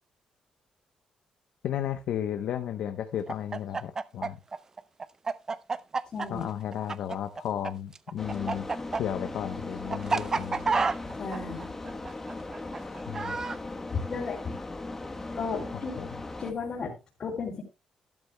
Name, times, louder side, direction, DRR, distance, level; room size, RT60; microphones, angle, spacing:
voice 1, 1.6-4.4 6.3-8.7 8.9-10.8 13.1-13.4 15.7-16.2, left 10 dB, 75° left, 8 dB, 0.8 m, -34 dB
Chicken rooster, 3.3-7.7 7.9-13.6, right 4 dB, 25° right, 0.5 m, -30 dB
voice 2, 6.1-6.4 11.2-11.7 13.9-14.4 15.3-15.9 16.4-17.6, left 5 dB, 45° left, -5 dB, 3.1 m, -34 dB
sound 1, 8.2-16.5, left 2 dB, 15° left, 1.1 m, -38 dB
13.5 x 12.0 x 2.2 m, 0.25 s
cardioid pair, 135°, 2 cm